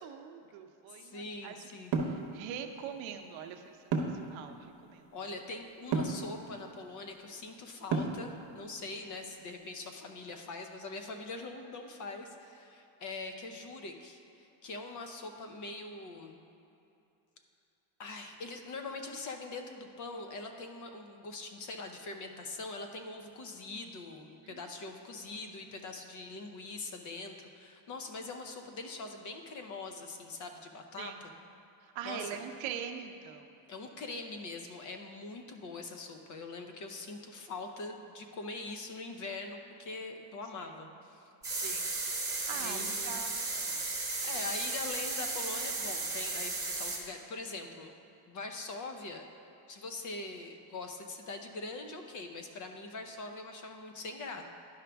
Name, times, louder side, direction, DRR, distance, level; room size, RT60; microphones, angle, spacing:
voice 1, 0.0-1.6 2.1-3.9 4.2-5.0 24.4-24.6 31.0-31.2 31.8-33.5 41.6-41.9 42.5-43.8, right 8 dB, 75° right, 6 dB, 0.7 m, -43 dB
voice 2, 0.9-1.9 5.1-16.4 18.0-31.3 32.0-32.4 33.7-41.3 42.5-43.2 44.2-47.9 48.2-49.2 49.7-54.4, left 3 dB, 40° left, 5 dB, 0.7 m, -43 dB
sound 1, 1.9-2.2 3.9-4.3 5.9-6.2 7.9-8.3, right 4 dB, 45° right, 0.9 m, -30 dB
sound 2, 41.4-47.0, right 3 dB, 5° right, 1.1 m, -35 dB
11.0 x 5.1 x 3.4 m, 2.7 s
cardioid pair, 150°, 47 cm